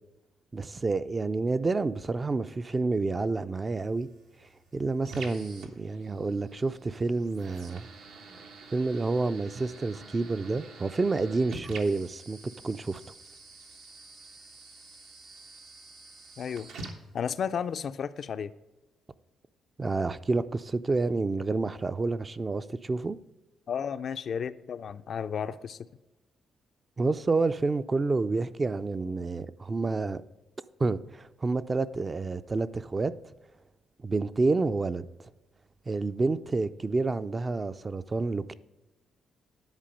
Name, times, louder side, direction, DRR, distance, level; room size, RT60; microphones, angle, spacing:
voice 1, 0.5-4.1 4.7-7.9 8.7-12.4 12.6-13.0 19.8-23.2 27.0-30.2 30.8-33.1 34.0-35.1 35.9-38.5, right 3 dB, 30° right, 0.4 m, -29 dB
sound 1, 3.7-17.7, right 3 dB, 80° right, 1.2 m, -48 dB
voice 2, 16.4-16.7 17.1-18.5 23.7-25.9, left 7 dB, 55° left, 0.3 m, -33 dB
10.5 x 4.2 x 5.2 m
cardioid pair, 90°, 0 cm